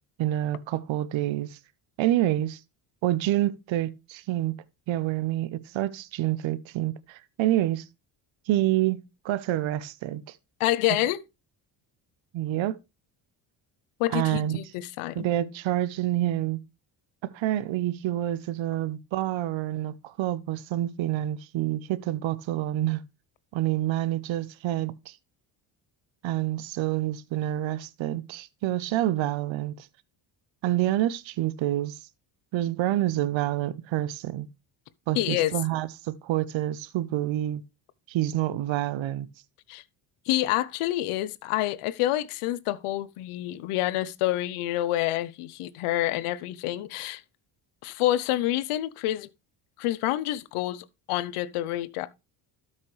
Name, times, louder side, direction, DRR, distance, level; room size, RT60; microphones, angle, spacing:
voice 1, 0.2-1.6 2.0-2.6 3.0-4.6 4.9-7.8 8.5-10.4 12.3-12.8 14.1-14.6 15.2-16.6 17.2-23.0 23.5-25.2 26.2-29.9 30.6-32.0 32.5-34.5 35.1-37.6 38.1-39.3, right 14 dB, 65° right, 0.8 m, -27 dB
voice 2, 10.6-11.2 14.0-15.3 35.2-35.5 39.7-39.8 40.3-47.2 47.8-49.3 49.8-52.1, left 15 dB, 80° left, 0.9 m, -28 dB
12.5 x 5.8 x 3.2 m
supercardioid pair, 75°, 50 cm